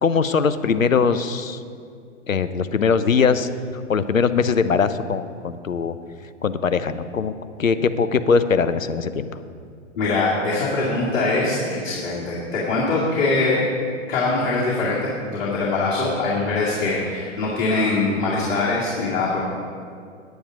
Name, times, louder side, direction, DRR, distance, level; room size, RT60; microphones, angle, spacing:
voice 1, 0.0-1.6 2.3-3.5 3.9-5.9 6.4-7.3 7.6-9.3, left 5 dB, 85° left, 12 dB, 0.6 m, -21 dB
voice 2, 10.0-13.6 14.1-19.4, left 3 dB, 50° left, -7 dB, 2.4 m, -22 dB
9.7 x 9.3 x 4.8 m, 2.3 s
figure-of-eight pair, 105°, 39 cm